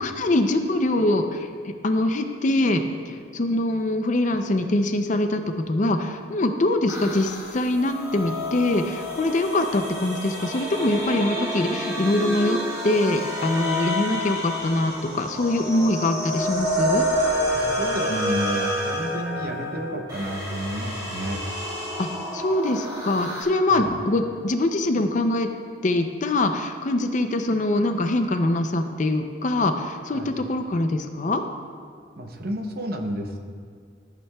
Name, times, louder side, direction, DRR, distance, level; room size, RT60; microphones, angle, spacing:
voice 1, 0.0-17.1 22.0-25.5 25.8-31.4, left 2 dB, 40° left, 7 dB, 0.5 m, -23 dB
sound 1, 6.9-23.4, equal, 20° right, 1.7 m, -29 dB
voice 2, 17.5-21.4 23.7-23.9 30.1-30.3 32.2-33.4, equal, 50° right, 4 dB, 0.7 m, -31 dB
14.5 x 8.3 x 2.3 m, 2.1 s
head